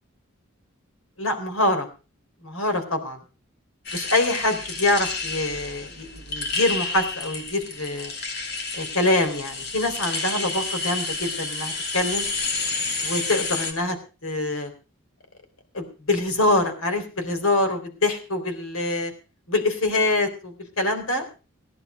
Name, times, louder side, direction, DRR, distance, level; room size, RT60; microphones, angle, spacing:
voice 1, 1.2-1.9 2.4-3.2 3.9-8.1 8.7-12.3 13.0-14.0 14.2-14.7 15.7-19.1 19.5-21.3, left 2 dB, 80° left, 6 dB, 3.8 m, -25 dB
sound 1, 3.9-13.7, left 3 dB, 50° left, 2.5 m, -30 dB
16.5 x 11.0 x 5.1 m, 0.33 s
head